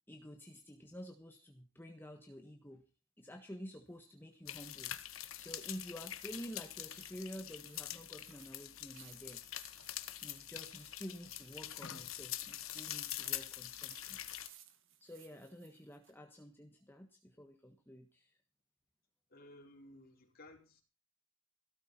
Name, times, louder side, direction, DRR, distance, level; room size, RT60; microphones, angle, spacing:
voice 1, 0.1-2.8 3.2-4.9 5.4-9.4 10.2-14.2 15.0-18.4, equal, 10° left, 1.3 m, -50 dB
sound 1, 3.9-16.2, right 11 dB, 65° right, 1.8 m, -64 dB
sound 2, 4.5-14.5, left 12 dB, 85° left, 1.4 m, -45 dB
voice 2, 19.3-20.8, left 1 dB, 45° left, 4.5 m, -57 dB
17.0 x 13.0 x 4.3 m
head